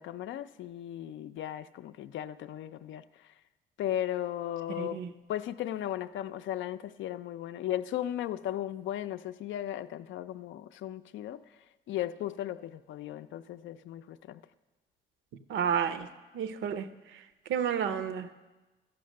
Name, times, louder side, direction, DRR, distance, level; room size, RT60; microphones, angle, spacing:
voice 1, 0.0-3.0 3.8-5.0 5.3-11.4 11.9-14.4, left 12 dB, 75° left, 12 dB, 0.5 m, -36 dB
voice 2, 4.8-5.1 15.5-16.1 16.3-16.9 17.5-18.3, right 8 dB, 80° right, 11 dB, 0.7 m, -30 dB
13.0 x 5.9 x 6.4 m, 1.2 s
cardioid pair, 90°, 20 cm